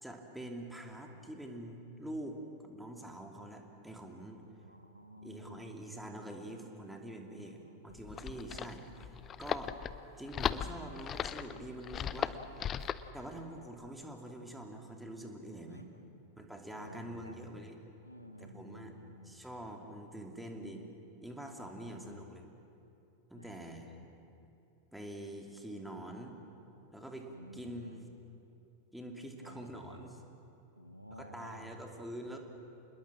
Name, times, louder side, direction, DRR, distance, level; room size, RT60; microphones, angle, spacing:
voice 1, 0.0-2.4 2.6-4.4 5.2-9.1 9.4-9.8 10.2-12.4 13.1-15.9 16.4-17.8 18.4-19.0 19.2-20.8 21.2-22.4 23.3-23.9 24.9-26.4 26.9-27.3 27.5-28.1 28.9-30.2 31.1-32.4, right 1 dB, 5° right, 2 dB, 2.7 m, -45 dB
voice 2, 4.6-5.7 6.0-6.1 7.4-8.2 8.5-8.7 12.1-12.7 15.7-16.4 16.8-17.4 18.0-19.4 20.5-20.9 21.8-22.3 23.3-24.1 27.2-28.0 29.4-30.1 30.8-32.0, equal, 90° right, 7 dB, 1.4 m, -53 dB
sound 1, 7.9-13.1, left 9 dB, 25° left, 0.7 m, -37 dB
27.0 x 21.0 x 7.5 m, 2.8 s
figure-of-eight pair, 90°, 0 cm